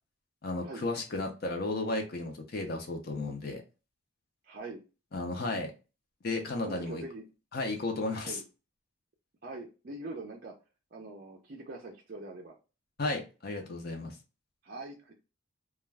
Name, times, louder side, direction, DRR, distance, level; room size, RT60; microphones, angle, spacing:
voice 1, 0.4-3.6 5.1-5.7 6.2-7.0 7.5-8.4 13.0-14.2, left 2 dB, 45° left, 3 dB, 0.5 m, -34 dB
voice 2, 4.4-4.8 6.6-7.2 8.2-8.4 9.4-10.5 10.9-12.6 14.6-15.1, right 2 dB, 45° right, 0 dB, 0.4 m, -43 dB
2.3 x 2.2 x 3.2 m, 0.31 s
head